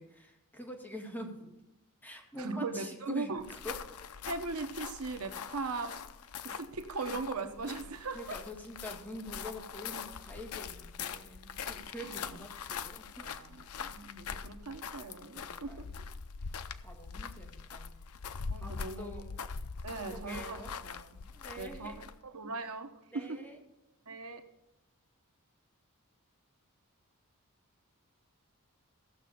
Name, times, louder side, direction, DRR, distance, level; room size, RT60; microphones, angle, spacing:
voice 1, 0.0-1.5 2.0-3.7 8.1-13.4 15.3-16.0 16.4-16.5 16.8-17.9 18.5-19.3 19.9-20.8 21.3-22.0 23.1-23.6, equal, 10° left, 2.0 m, -46 dB
voice 2, 2.4-3.4 4.3-6.0 6.4-8.2 12.0-12.2 13.2-15.8 18.5-19.1 19.8-21.3 21.6-23.4 24.1-24.5, right 3 dB, 70° right, 0.9 m, -39 dB
sound 1, 3.4-22.3, left 6 dB, 75° left, 0.6 m, -43 dB
15.5 x 6.7 x 5.1 m
head